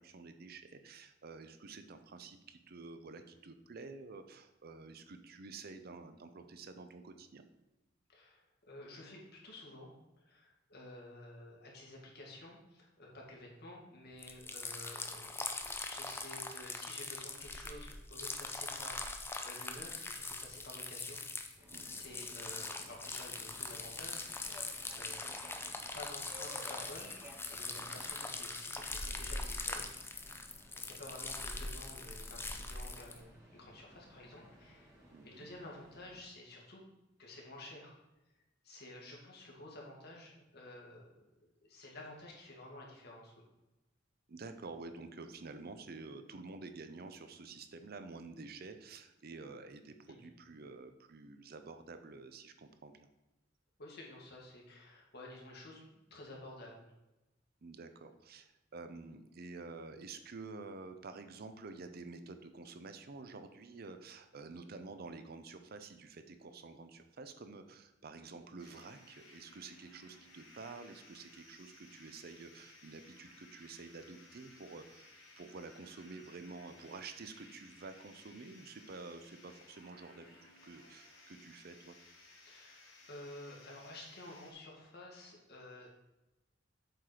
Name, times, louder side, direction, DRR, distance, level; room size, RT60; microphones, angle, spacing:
voice 1, 0.0-7.4 21.7-22.0 27.8-28.1 35.1-35.5 44.3-53.1 57.6-82.0, right 3 dB, 55° right, 9 dB, 0.6 m, -50 dB
voice 2, 8.1-9.9 10.2-21.2 21.6-24.5 24.9-27.2 27.5-29.9 30.2-30.4 30.7-35.0 35.2-36.8 37.2-38.0 38.6-41.3 41.6-43.4 50.1-50.2 53.8-56.9 82.4-85.9, left 1 dB, 55° left, -2 dB, 2.0 m, -52 dB
sound 1, 14.2-33.2, left 3 dB, 10° left, 0.6 m, -42 dB
Subway metro underground, 21.6-36.2, equal, 15° right, 2.3 m, -58 dB
sound 2, 68.6-84.5, left 2 dB, 80° left, 1.8 m, -59 dB
7.7 x 4.4 x 4.9 m, 0.99 s
head